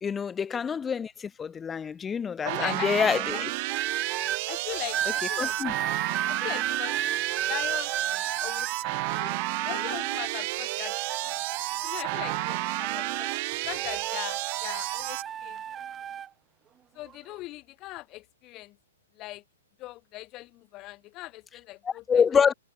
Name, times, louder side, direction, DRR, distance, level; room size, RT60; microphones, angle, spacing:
voice 1, 0.0-3.5 5.4-5.7 21.8-22.5, left 6 dB, 15° left, 0.6 m, -26 dB
voice 2, 2.4-3.4 4.5-5.6 6.3-7.0 7.4-8.7 9.1-11.0 11.2-11.4 11.8-13.3 13.6-15.6 16.9-18.8 19.1-19.4 19.8-22.2, left 19 dB, 30° left, 4.8 m, -40 dB
sound 1, 2.5-15.2, right 25 dB, 40° right, 5.8 m, -32 dB
sound 2, 3.7-4.4 4.9-10.4 10.8-13.5 13.8-16.3 17.1-17.3, right 9 dB, 20° right, 0.9 m, -33 dB
figure-of-eight pair, 115°, 0 cm